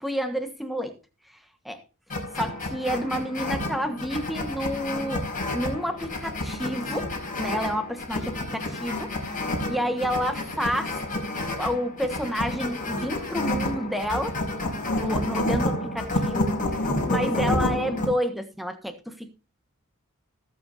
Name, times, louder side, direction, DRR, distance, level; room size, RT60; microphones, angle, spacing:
voice 1, 0.0-0.9 1.6-1.8 2.3-5.2 5.5-9.1 9.7-11.0 11.6-14.4 14.9-16.5 17.1-19.4, equal, ahead, 1.3 m, -29 dB
sound 1, 2.1-18.1, left 1 dB, 40° left, 5.3 m, -29 dB
19.5 x 7.8 x 2.7 m
head